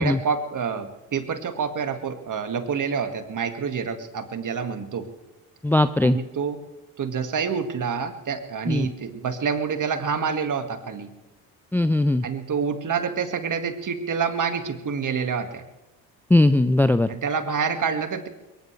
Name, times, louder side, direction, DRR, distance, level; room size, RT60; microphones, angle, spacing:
voice 1, 0.0-5.1 6.0-6.6 7.0-11.1 12.2-15.6 17.1-18.3, right 6 dB, 45° right, 7 dB, 2.0 m, -27 dB
voice 2, 5.6-6.2 8.7-8.9 11.7-12.2 16.3-17.1, left 1 dB, 5° left, 12 dB, 0.5 m, -19 dB
21.5 x 19.0 x 3.3 m, 1.1 s
supercardioid pair, 65°, 43 cm